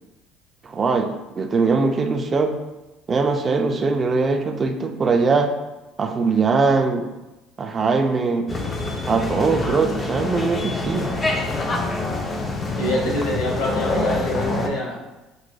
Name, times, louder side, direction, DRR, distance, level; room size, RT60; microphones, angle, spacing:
voice 1, 0.6-2.6 3.1-5.5 6.0-7.1 7.6-8.5 9.1-11.1, right 4 dB, 30° right, 5 dB, 0.4 m, -21 dB
sound 1, 8.5-14.7, left 2 dB, 25° left, 0.6 m, -26 dB
voice 2, 12.7-15.0, left 1 dB, 80° left, -4 dB, 1.4 m, -25 dB
6.3 x 2.5 x 2.2 m, 1.0 s
supercardioid pair, 90°, 0 cm